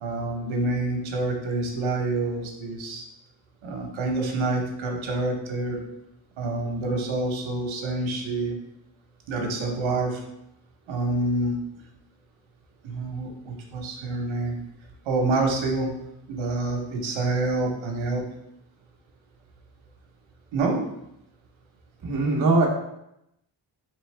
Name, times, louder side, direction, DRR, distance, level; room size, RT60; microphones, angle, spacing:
voice 1, 0.0-3.0 3.6-5.8 6.4-8.6 9.3-10.2 10.9-11.6 12.8-14.6 15.0-15.9 16.3-18.2 20.5-20.8, right 2 dB, 70° right, 1 dB, 0.9 m, -27 dB
voice 2, 22.0-22.7, right 3 dB, 40° right, -2 dB, 0.7 m, -21 dB
3.9 x 3.3 x 3.2 m, 0.81 s
wide cardioid pair, 170°, 48 cm